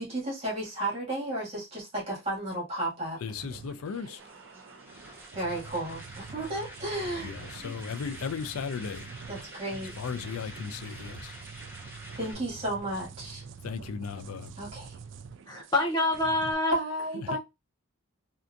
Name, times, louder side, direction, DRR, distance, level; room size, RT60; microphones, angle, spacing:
voice 1, 0.0-3.2 5.3-7.7 9.3-10.0 12.2-13.4 14.6-15.0 16.7-17.4, right 1 dB, 30° right, 1.7 m, -33 dB
voice 2, 3.2-4.2 7.2-9.1 10.0-11.4 13.6-14.5 17.3-17.4, left 6 dB, 90° left, 0.4 m, -36 dB
sound 1, 3.2-16.5, right 5 dB, 60° right, 0.3 m, -46 dB
sound 2, 4.2-12.3, right 1 dB, 10° right, 0.9 m, -47 dB
voice 3, 15.5-16.7, left 2 dB, 20° left, 0.7 m, -26 dB
3.3 x 2.8 x 2.4 m
head